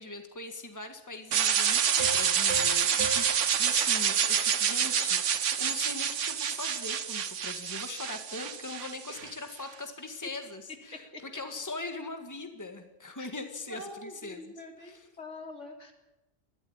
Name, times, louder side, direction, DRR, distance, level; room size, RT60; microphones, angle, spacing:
voice 1, 0.0-3.3 3.6-14.5 14.8-15.1, left 3 dB, 15° left, 6 dB, 1.9 m, -41 dB
sound 1, 1.3-9.3, right 8 dB, 85° right, 1.3 m, -28 dB
sound 2, 2.0-5.3, right 2 dB, 40° left, 3.4 m, -39 dB
voice 2, 13.7-15.9, left 2 dB, 80° left, 2 dB, 3.8 m, -44 dB
21.5 x 15.5 x 8.9 m, 0.95 s
omnidirectional pair, 1.2 m